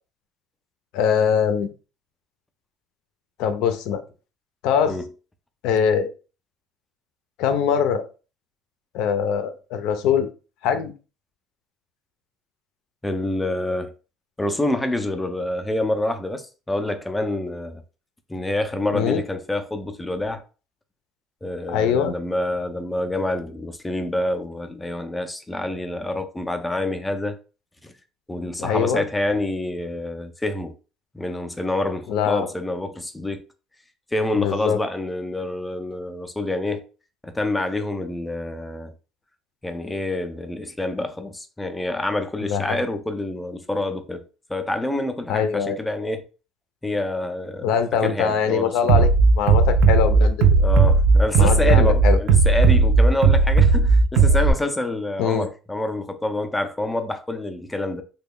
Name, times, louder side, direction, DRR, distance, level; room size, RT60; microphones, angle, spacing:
voice 1, 0.9-1.7 3.4-4.0 4.6-5.0 5.6-6.1 7.4-8.1 8.9-10.3 10.6-10.9 18.9-19.2 21.7-22.1 28.6-29.0 32.1-32.5 34.4-34.8 42.4-42.8 45.3-45.8 47.6-49.1 49.4-50.8 51.4-52.2 55.2-55.5, left 7 dB, 75° left, 0.5 m, -22 dB
voice 2, 13.0-13.9 14.4-17.8 18.3-20.4 21.4-27.4 27.8-27.9 28.3-30.7 31.1-33.4 34.1-36.8 37.2-38.9 39.6-44.2 44.5-46.3 46.8-47.7 48.0-49.1 50.6-58.0, left 1 dB, 10° left, 0.4 m, -27 dB
Bass drum, 48.9-54.5, right 4 dB, 60° right, 0.5 m, -15 dB
3.2 x 2.2 x 3.6 m
cardioid pair, 145°, 0 cm